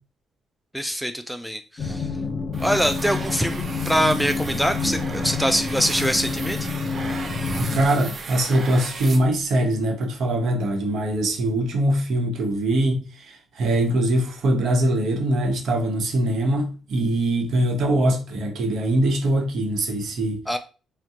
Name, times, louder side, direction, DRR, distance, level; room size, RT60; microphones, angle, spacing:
voice 1, 0.7-2.1 2.6-6.7 20.5-20.6, equal, ahead, 0.3 m, -24 dB
sound 1, 1.8-7.9, left 4 dB, 45° left, 0.7 m, -28 dB
sound 2, 2.5-9.7, right 3 dB, 45° right, 0.6 m, -36 dB
voice 2, 7.6-20.4, right 1 dB, 70° right, 0.9 m, -22 dB
2.7 x 2.2 x 3.6 m
cardioid pair, 90°, 0 cm